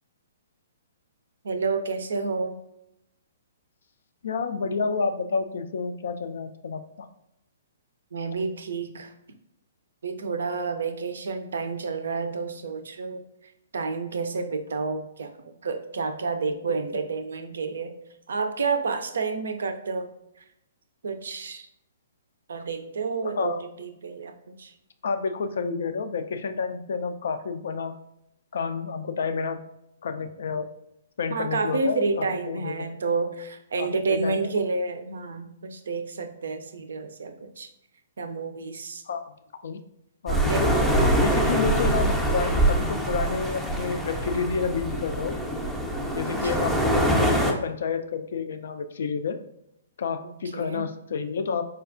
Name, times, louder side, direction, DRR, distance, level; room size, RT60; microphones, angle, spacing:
voice 1, 1.4-2.6 8.1-9.1 10.0-18.0 18.3-20.1 21.0-21.7 22.5-24.7 31.3-37.7 38.2-39.0 40.3-40.6 41.5-41.6 46.2-46.7 50.2-50.9, right 4 dB, 70° right, 8 dB, 0.4 m, -30 dB
voice 2, 4.2-7.1 23.2-23.6 25.0-28.0 28.5-29.6 30.0-30.7 31.2-32.9 33.8-34.6 39.1-39.8 40.2-40.7 41.2-45.4 46.1-49.4 50.0-51.6, left 5 dB, 65° left, 8 dB, 0.3 m, -30 dB
sound 1, 40.3-47.5, right 1 dB, ahead, 0.5 m, -24 dB
4.3 x 2.3 x 2.5 m, 0.81 s
figure-of-eight pair, 125°, 0 cm